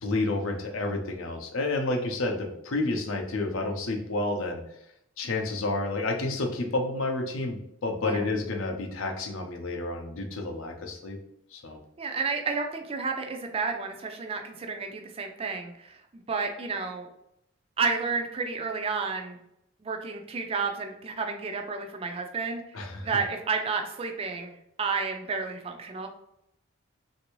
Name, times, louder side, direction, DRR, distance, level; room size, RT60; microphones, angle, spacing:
voice 1, 0.0-4.6 5.2-11.2 11.5-11.8 22.7-23.1, left 2 dB, 70° left, 4 dB, 0.6 m, -30 dB
voice 2, 12.0-16.0 16.3-17.1 17.8-19.4 19.8-26.1, right 4 dB, 25° right, 4 dB, 0.3 m, -31 dB
3.3 x 2.6 x 3.0 m, 0.78 s
head